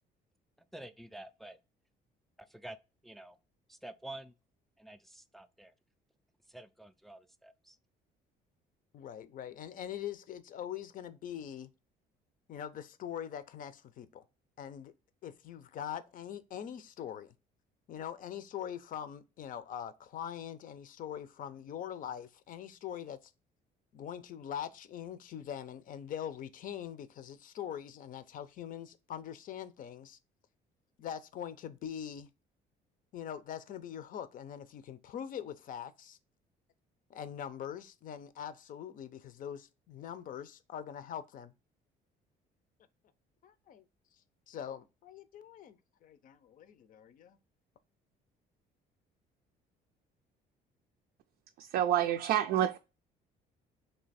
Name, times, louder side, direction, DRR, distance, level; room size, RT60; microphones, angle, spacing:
voice 1, 0.7-1.6 2.6-2.8 3.0-3.3 3.8-4.3 4.8-5.0 5.3-5.7 6.5-7.5, right 1 dB, ahead, 0.3 m, -47 dB
voice 2, 8.9-11.7 12.5-14.2 14.6-14.9 15.2-17.3 17.9-23.3 23.9-30.2 31.0-32.3 33.1-36.2 37.1-41.5 43.4-43.8 44.5-47.4, left 9 dB, 55° left, 0.6 m, -43 dB
voice 3, 51.6-52.8, right 11 dB, 65° right, 0.4 m, -28 dB
3.3 x 2.8 x 4.0 m
cardioid pair, 110°, 17 cm